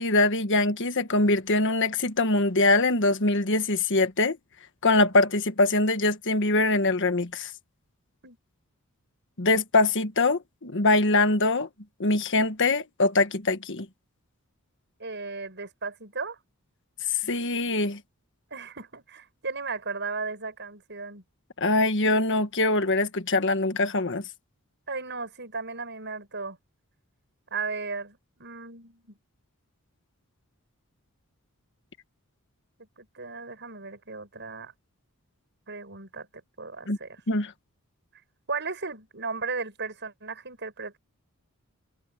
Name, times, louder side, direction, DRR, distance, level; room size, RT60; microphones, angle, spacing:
voice 1, 0.0-4.4 4.8-7.5 9.4-11.7 12.0-13.9 17.2-18.0 21.6-24.2 36.9-37.0 37.3-37.5, left 2 dB, 55° left, 1.5 m, -23 dB
voice 2, 15.0-16.4 18.5-21.2 24.9-26.6 27.5-29.1 32.8-34.7 35.7-36.3 36.6-37.2 38.5-41.0, right 4 dB, 55° right, 7.3 m, -35 dB
head